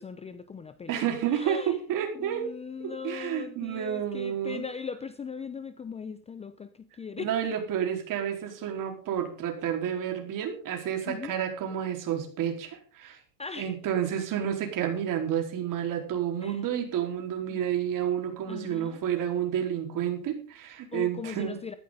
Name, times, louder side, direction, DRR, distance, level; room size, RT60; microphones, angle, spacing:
voice 1, 0.0-1.0 1.3-1.8 2.1-6.7 7.0-7.3 11.1-11.4 13.4-13.7 16.4-16.6 17.5-17.6 18.5-19.0 20.9-21.7, left 6 dB, 15° left, 12 dB, 0.7 m, -39 dB
voice 2, 0.9-2.5 2.8-4.7 7.2-13.2 13.6-21.6, right 9 dB, 40° right, 3 dB, 4.3 m, -30 dB
14.5 x 14.0 x 3.9 m, 0.41 s
supercardioid pair, 125°, 46 cm